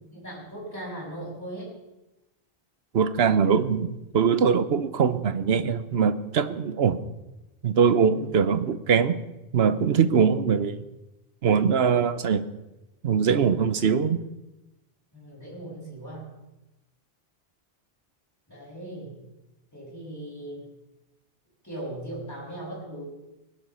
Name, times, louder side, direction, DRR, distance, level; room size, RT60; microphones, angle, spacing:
voice 1, 0.1-1.7 8.1-8.3 15.1-16.3 18.5-19.1 19.7-20.7 21.6-23.0, right 1 dB, 15° left, -6 dB, 6.1 m, -38 dB
voice 2, 2.9-7.0 7.6-9.2 9.5-10.8 11.4-12.5 13.0-14.2, right 6 dB, 80° right, 13 dB, 1.1 m, -22 dB
19.5 x 11.0 x 5.6 m, 0.98 s
omnidirectional pair, 1.0 m